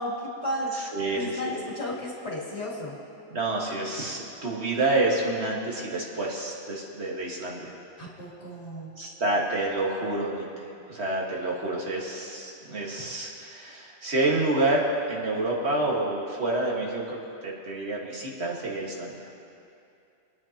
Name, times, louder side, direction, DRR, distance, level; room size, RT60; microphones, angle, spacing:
voice 1, 0.0-0.7 1.1-2.9 8.0-8.9, left 1 dB, 80° left, -4 dB, 2.6 m, -33 dB
voice 2, 0.7-1.5 3.3-7.7 9.0-19.3, right 2 dB, 75° right, -2 dB, 2.0 m, -28 dB
27.0 x 9.2 x 2.9 m, 2.6 s
omnidirectional pair, 1.1 m